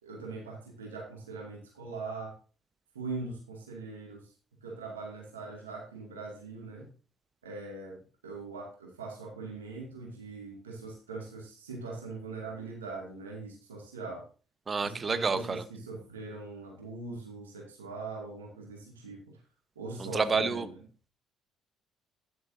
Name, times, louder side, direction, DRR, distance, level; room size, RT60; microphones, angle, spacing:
voice 1, 0.0-2.3 2.9-4.3 4.6-6.9 7.4-14.3 14.8-19.4 19.8-20.8, right 3 dB, 85° right, 0 dB, 2.3 m, -41 dB
voice 2, 14.7-15.6 20.0-20.7, right 4 dB, 35° right, 14 dB, 1.1 m, -29 dB
11.0 x 10.5 x 2.7 m, 0.36 s
hypercardioid pair, 50°, 0 cm